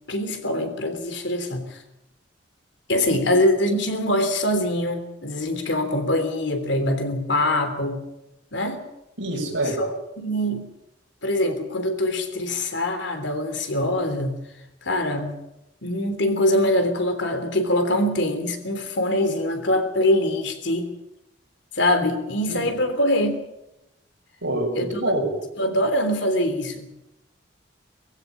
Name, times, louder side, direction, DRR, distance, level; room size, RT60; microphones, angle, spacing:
voice 1, 0.1-1.8 2.9-8.0 8.5-8.8 9.6-10.7 11.2-14.4 14.8-15.4 15.8-20.9 21.7-23.4 24.7-24.9 25.6-26.9, left 1 dB, 70° left, 7 dB, 3.4 m, -23 dB
voice 2, 9.2-9.8 22.5-22.6 24.4-25.3, right 1 dB, 85° right, 1 dB, 6.6 m, -26 dB
20.0 x 15.5 x 8.7 m, 0.90 s
head